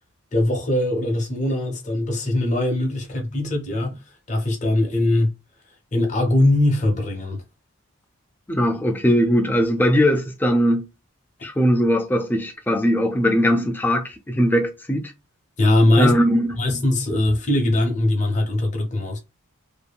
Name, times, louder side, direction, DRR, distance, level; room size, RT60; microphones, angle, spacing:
voice 1, 0.3-4.0 4.3-5.3 5.9-7.4 15.6-16.1 16.6-19.2, left 1 dB, 35° left, 0.7 m, -21 dB
voice 2, 8.5-10.9 11.4-15.1 15.9-16.5, equal, 10° left, 0.3 m, -20 dB
2.7 x 2.6 x 2.2 m
head